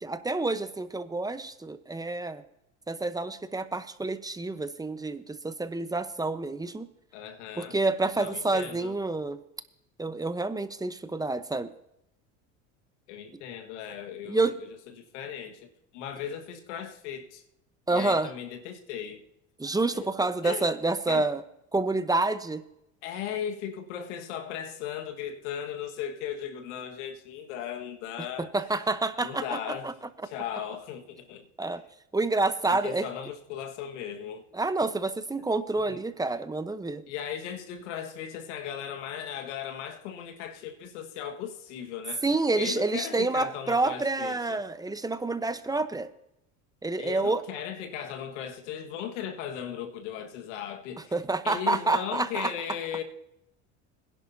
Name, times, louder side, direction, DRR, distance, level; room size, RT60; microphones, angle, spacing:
voice 1, 0.0-2.4 2.9-6.9 7.6-9.4 10.0-11.7 14.3-14.6 17.9-18.3 19.6-21.4 21.7-22.6 28.4-29.6 29.8-29.9 31.6-31.8 32.1-33.1 34.5-37.0 42.2-46.1 46.8-47.4 51.1-52.5, right 3 dB, 10° right, 0.9 m, -28 dB
voice 2, 7.1-7.8 8.1-8.9 13.1-17.4 17.9-19.2 19.9-20.7 21.1-21.3 23.0-28.5 29.2-30.0 30.2-31.5 32.7-34.4 35.8-36.0 37.1-42.2 42.6-44.6 47.0-51.1 51.4-53.0, left 9 dB, 80° left, 1.7 m, -37 dB
21.0 x 11.0 x 2.7 m
hypercardioid pair, 85°, 35 cm